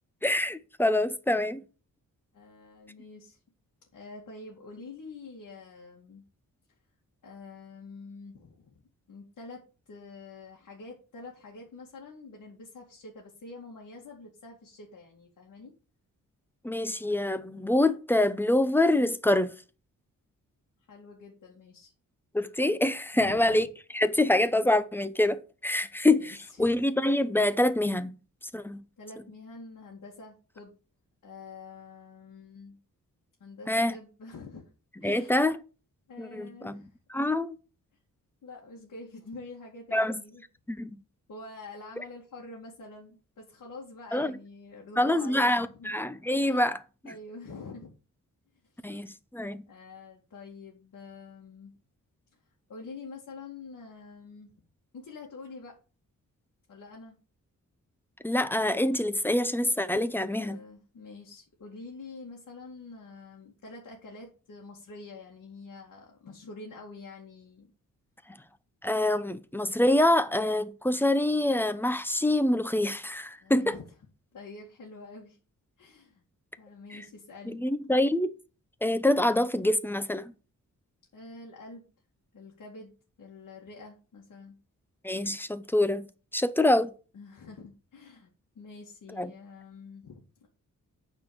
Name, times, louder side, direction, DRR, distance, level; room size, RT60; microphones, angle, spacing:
voice 1, 0.2-1.6 16.6-19.6 22.3-23.7 23.9-28.1 28.5-28.8 33.7-34.0 35.0-35.6 36.2-36.8 37.1-37.6 39.9-40.2 40.7-41.0 44.1-44.3 45.0-46.8 47.0-47.1 48.8-49.6 58.2-60.6 68.8-73.8 76.9-77.0 77.5-78.3 78.8-80.3 85.0-86.1 86.3-86.9 89.1-89.3, left 1 dB, 5° left, 0.6 m, -26 dB
voice 2, 2.3-3.4 3.9-6.2 7.2-8.8 9.1-15.7 20.9-21.9 23.1-23.7 26.2-26.7 29.0-30.8 31.2-32.8 33.4-34.7 35.0-35.4 36.1-37.0 38.4-40.4 41.3-45.9 46.4-46.7 47.0-47.9 48.7-49.0 49.7-51.7 52.7-54.5 54.9-55.8 56.7-57.2 60.0-67.7 73.4-73.8 74.3-75.4 75.8-76.2 76.6-77.6 81.1-81.9 82.3-82.9 83.2-84.6 87.1-90.5, left 3 dB, 65° left, 2.2 m, -46 dB
9.1 x 4.4 x 6.5 m
wide cardioid pair, 130°, 33 cm